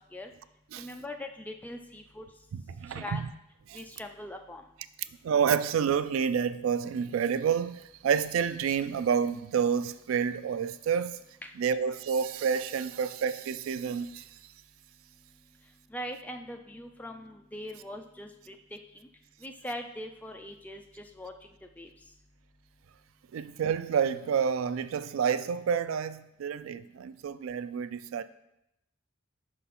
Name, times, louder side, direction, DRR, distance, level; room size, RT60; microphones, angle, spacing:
voice 1, 0.8-2.2 2.9-3.2 3.7-4.6 11.4-11.5 15.9-18.8 19.4-21.3 21.8-21.9, left 1 dB, 10° left, 0.3 m, -41 dB
voice 2, 2.5-3.3 3.7-3.8 5.2-11.2 11.6-14.3 23.3-28.2, right 7 dB, 85° right, 0.3 m, -29 dB
5.6 x 5.4 x 4.2 m
head